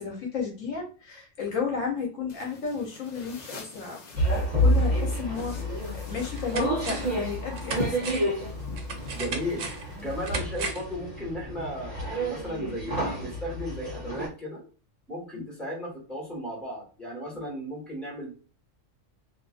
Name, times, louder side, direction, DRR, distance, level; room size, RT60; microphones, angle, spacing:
voice 1, 0.0-8.2 10.0-10.1 15.3-15.4, left 5 dB, 80° left, 0 dB, 1.1 m, -33 dB
sound 1, 2.3-10.4, left 4 dB, 50° left, 0.5 m, -43 dB
sound 2, 4.1-14.3, equal, 30° right, 1.2 m, -29 dB
sound 3, 5.6-5.7 6.1-7.2 7.6-11.0 11.3-11.4, right 4 dB, 80° right, 1.0 m, -36 dB
voice 2, 9.1-14.6 15.1-18.3, equal, ahead, -4 dB, 1.3 m, -35 dB
2.6 x 2.5 x 2.4 m, 0.36 s
omnidirectional pair, 1.3 m